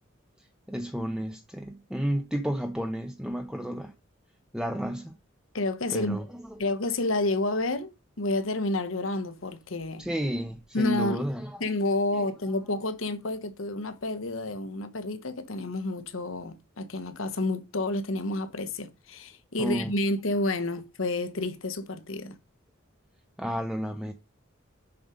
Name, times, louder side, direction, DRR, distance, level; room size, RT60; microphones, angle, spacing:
voice 1, 0.7-3.9 4.5-5.1 5.9-6.6 10.0-11.6 12.2-12.3 19.6-19.9 23.4-24.1, equal, 5° right, 0.7 m, -31 dB
voice 2, 5.5-6.2 6.6-10.0 10.7-11.2 11.6-22.4, left 2 dB, 80° left, 1.1 m, -30 dB
7.1 x 5.2 x 5.1 m
head